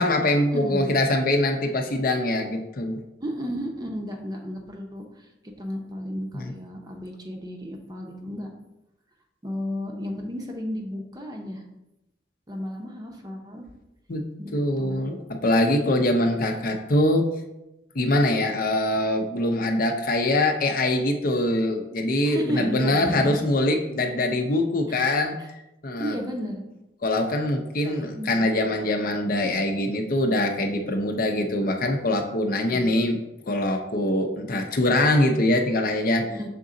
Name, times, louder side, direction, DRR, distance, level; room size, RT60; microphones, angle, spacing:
voice 1, 0.0-3.0 6.3-6.5 14.1-17.3 17.9-25.4 25.8-26.2 27.0-33.2 33.5-36.2, left 1 dB, 55° left, 4 dB, 0.7 m, -23 dB
voice 2, 0.5-0.9 3.2-5.3 5.6-8.5 9.4-11.6 12.5-13.6 14.4-15.1 22.2-23.4 25.0-25.1 26.0-26.6 27.8-28.5 36.2-36.5, equal, 25° right, 1 dB, 0.8 m, -33 dB
6.7 x 3.9 x 3.8 m, 0.91 s
head